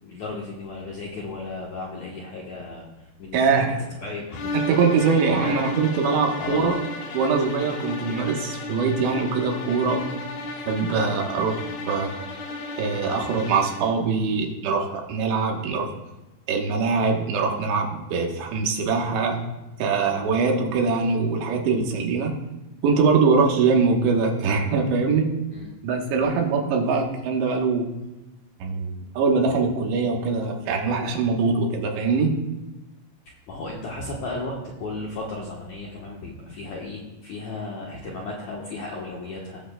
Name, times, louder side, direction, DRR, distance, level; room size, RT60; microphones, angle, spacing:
voice 1, 0.0-2.9 3.2-3.7 4.0-4.5 5.3-5.5 6.4-6.8 25.5-25.7 26.2-26.4 33.5-39.6, left 2 dB, 70° left, -3 dB, 1.8 m, -34 dB
voice 2, 3.3-3.7 4.7-6.7 7.1-10.1 10.7-11.6 11.9-12.1 12.8-15.9 16.5-19.4 19.8-22.4 22.8-25.3 25.8-27.9 28.6-32.4, right 4 dB, 80° right, 1 dB, 3.4 m, -23 dB
sound 1, 4.3-14.0, left 2 dB, 85° left, 3.7 m, -34 dB
17.5 x 7.8 x 2.2 m, 1.1 s
omnidirectional pair, 5.0 m